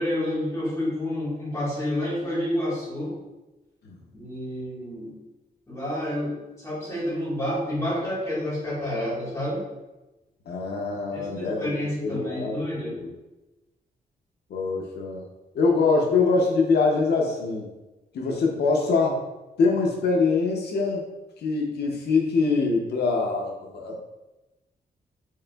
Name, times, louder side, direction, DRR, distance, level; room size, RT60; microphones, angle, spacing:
voice 1, 0.0-3.1 4.1-5.1 5.7-9.6 11.1-12.9, left 1 dB, 15° left, -8 dB, 1.5 m, -29 dB
voice 2, 10.5-11.7 12.0-12.6 13.0-13.1 14.5-15.3 15.5-17.7 18.1-19.2 19.6-21.0 21.4-24.0, left 4 dB, 90° left, 0 dB, 0.6 m, -24 dB
4.6 x 3.3 x 2.3 m, 1.1 s
wide cardioid pair, 175°, 17 cm